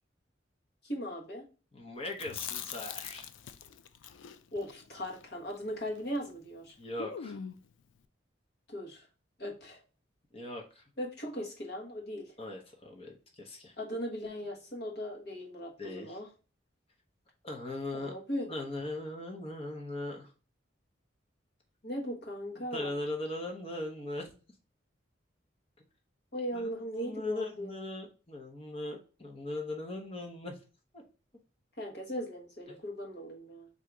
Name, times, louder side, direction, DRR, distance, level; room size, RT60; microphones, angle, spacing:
voice 1, 0.8-1.5 4.5-6.7 8.7-9.1 9.4-9.8 11.0-12.3 13.8-16.3 17.9-18.5 21.8-23.0 26.3-27.7 31.8-33.7, equal, 60° left, 0 dB, 1.4 m, -38 dB
voice 2, 1.7-3.3 6.8-7.4 10.3-10.8 12.4-13.7 15.8-16.2 17.4-18.1 18.5-20.3 22.6-24.3 26.5-30.6 30.9-31.0 32.7-32.8, left 2 dB, 30° left, 2 dB, 0.8 m, -39 dB
Chewing mastication, 2.1-6.3 6.6-6.7 7.0-7.7, left 8 dB, 90° left, 0.4 m, -43 dB
3.8 x 2.8 x 4.5 m, 0.34 s
head